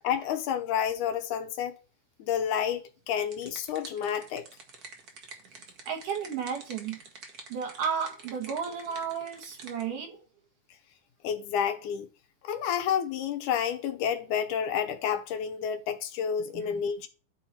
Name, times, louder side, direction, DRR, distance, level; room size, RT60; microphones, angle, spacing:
voice 1, 0.0-1.8 2.2-4.5 11.2-12.1 12.4-17.1, left 8 dB, 80° left, 2.3 m, -30 dB
sound 1, 3.0-9.8, right 4 dB, 65° right, 0.9 m, -48 dB
voice 2, 5.9-7.0 7.5-10.3 16.5-17.1, right 7 dB, 80° right, 2.9 m, -33 dB
12.0 x 4.2 x 4.3 m
omnidirectional pair, 3.6 m